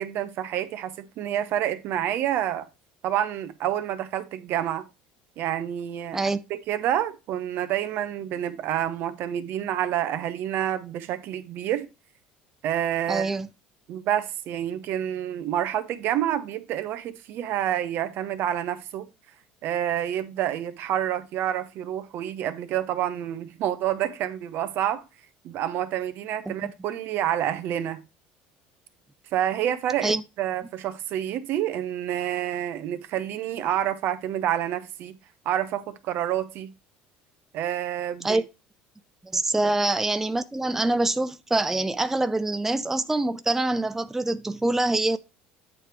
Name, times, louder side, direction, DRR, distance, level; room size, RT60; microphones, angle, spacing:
voice 1, 0.0-2.7 3.0-4.9 5.4-6.4 6.7-11.9 12.6-13.4 13.9-19.1 19.6-25.0 25.4-28.0 29.3-35.2 35.4-36.7 37.5-38.4 39.6-39.7, right 11 dB, 60° right, 0.8 m, -28 dB
voice 2, 13.1-13.5 26.5-26.7 30.0-30.2 38.2-38.4 39.2-45.2, right 2 dB, 10° right, 0.4 m, -25 dB
8.5 x 3.3 x 4.5 m
supercardioid pair, 85°, 4 cm